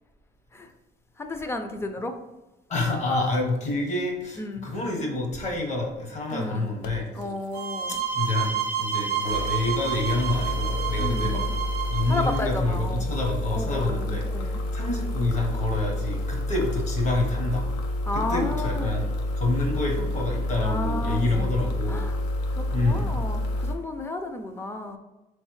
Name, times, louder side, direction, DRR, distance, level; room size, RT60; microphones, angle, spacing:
voice 1, 1.2-2.2 4.4-4.7 6.3-6.7 7.1-8.0 11.0-11.5 12.1-13.1 13.5-14.6 18.1-18.9 20.6-21.5 21.9-22.2 22.5-25.0, left 2 dB, 15° left, 6 dB, 0.4 m, -32 dB
voice 2, 2.7-7.1 8.1-11.4 11.9-17.6 18.1-19.1 19.4-22.0 22.7-23.1, left 2 dB, 45° left, 1 dB, 1.1 m, -27 dB
sound 1, 6.3-6.4 6.8-8.4 9.2-23.8, left 1 dB, 85° left, 0.6 m, -29 dB
sound 2, 7.5-12.5, right 8 dB, 70° right, 0.6 m, -30 dB
4.0 x 3.2 x 3.1 m, 1.0 s
cardioid pair, 110°, 17 cm